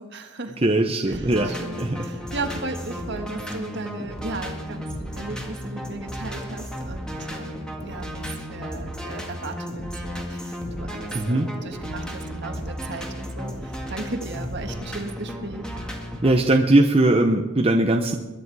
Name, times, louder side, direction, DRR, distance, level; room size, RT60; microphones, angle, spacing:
voice 1, 0.0-0.7 1.1-15.6, right 2 dB, 55° right, 5 dB, 1.6 m, -36 dB
voice 2, 0.6-1.5 1.8-2.0 11.1-11.5 16.2-18.2, right 2 dB, 25° right, 3 dB, 0.7 m, -19 dB
sound 1, 1.1-16.4, equal, 5° left, 1.8 m, -34 dB
22.5 x 9.8 x 4.8 m, 1.3 s
head